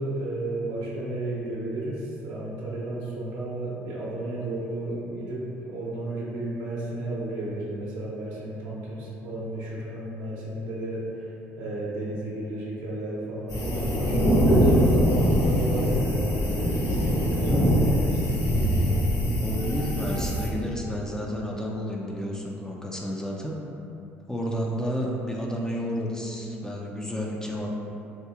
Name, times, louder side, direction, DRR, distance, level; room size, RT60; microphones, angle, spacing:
voice 1, 0.0-18.2, right 1 dB, 65° right, -6 dB, 0.9 m, -33 dB
sound 1, 13.5-20.5, equal, 50° left, 0.9 m, -23 dB
voice 2, 19.1-23.5 24.3-27.7, equal, 10° left, -2 dB, 0.5 m, -31 dB
3.0 x 2.6 x 3.5 m, 2.8 s
hypercardioid pair, 60°, 7 cm